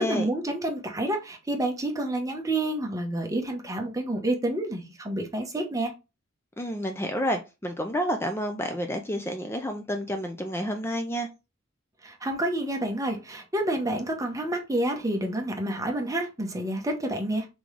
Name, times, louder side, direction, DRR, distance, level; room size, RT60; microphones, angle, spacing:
voice 1, 0.0-5.9 12.0-17.5, right 1 dB, 15° right, 0.9 m, -29 dB
voice 2, 6.6-11.3, equal, 10° left, 0.4 m, -29 dB
3.7 x 3.7 x 3.2 m
head